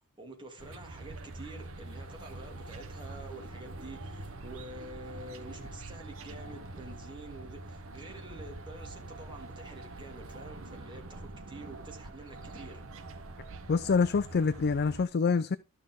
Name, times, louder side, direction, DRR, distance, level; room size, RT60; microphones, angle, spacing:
voice 1, 0.2-12.8, right 2 dB, 20° right, 2.8 m, -48 dB
sound 1, 0.6-15.0, right 2 dB, 65° right, 1.2 m, -45 dB
voice 2, 13.7-15.6, left 5 dB, 50° left, 0.4 m, -26 dB
12.5 x 6.4 x 3.7 m
head